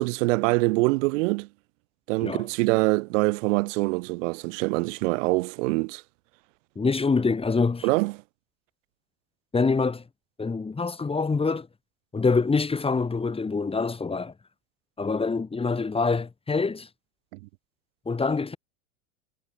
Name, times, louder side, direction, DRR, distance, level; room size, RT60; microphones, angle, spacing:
voice 1, 0.0-1.5 2.1-6.0 7.8-8.1 17.3-17.4, right 25 dB, 65° right, 3.0 m, -24 dB
voice 2, 6.8-7.9 9.5-10.0 10.4-11.7 12.1-14.3 15.0-16.9 18.1-18.6, left 4 dB, 15° left, 2.1 m, -25 dB
supercardioid pair, 110°, 40 cm